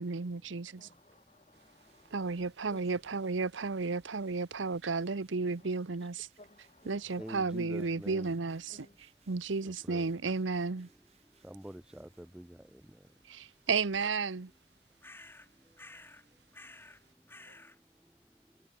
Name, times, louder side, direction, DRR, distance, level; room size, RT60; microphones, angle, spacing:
voice 1, 0.0-0.9 2.1-6.3 6.8-10.9 13.3-14.5, right 4 dB, 85° right, 0.8 m, -33 dB
voice 2, 0.8-2.4 2.7-3.0 5.6-5.7 6.0-6.1 6.4-7.4 7.8-7.9 8.2-8.3 8.7-9.0, left 1 dB, 35° left, 7.8 m, -58 dB
sound 1, 1.5-17.2, right 4 dB, 60° right, 7.1 m, -70 dB
sound 2, 1.8-12.4, right 8 dB, 35° right, 7.8 m, -72 dB
voice 3, 7.2-8.3 9.9-10.0 11.4-12.6, equal, 5° right, 0.3 m, -45 dB
sound 3, 15.0-15.5 15.8-16.2 16.5-17.0 17.3-17.8, left 2 dB, 10° left, 1.8 m, -52 dB
head